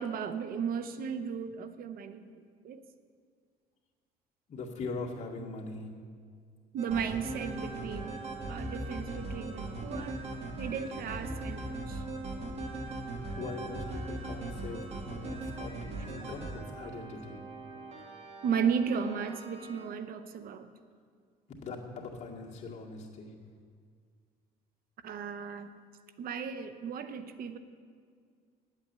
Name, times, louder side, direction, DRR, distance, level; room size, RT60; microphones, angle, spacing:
voice 1, 0.0-2.8 6.7-8.2 8.5-10.2 10.6-12.0 18.4-20.7 25.0-25.7 26.2-27.6, right 6 dB, 60° right, 11 dB, 0.7 m, -35 dB
voice 2, 4.5-5.9 13.3-15.7 16.0-17.4 21.6-23.3, left 3 dB, 45° left, -3 dB, 2.1 m, -41 dB
sound 1, 6.8-19.8, right 2 dB, 40° right, 2.0 m, -40 dB
10.0 x 8.2 x 8.2 m, 2.1 s
cardioid pair, 110°, 17 cm